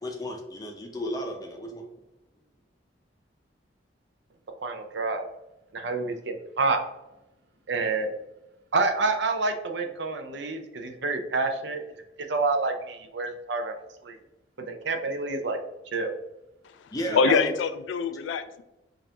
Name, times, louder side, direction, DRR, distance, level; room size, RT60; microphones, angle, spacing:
voice 1, 0.0-1.8 16.9-17.5, equal, 20° left, 1 dB, 0.6 m, -33 dB
voice 2, 4.6-5.3 5.7-6.8 7.7-8.1 8.7-11.8 12.3-13.7 14.0-14.2 14.6-15.6 15.9-16.1 17.1-17.4, right 3 dB, 65° right, 6 dB, 0.5 m, -28 dB
voice 3, 17.1-18.6, left 5 dB, 75° left, 11 dB, 0.3 m, -24 dB
5.2 x 2.5 x 2.8 m, 0.94 s
head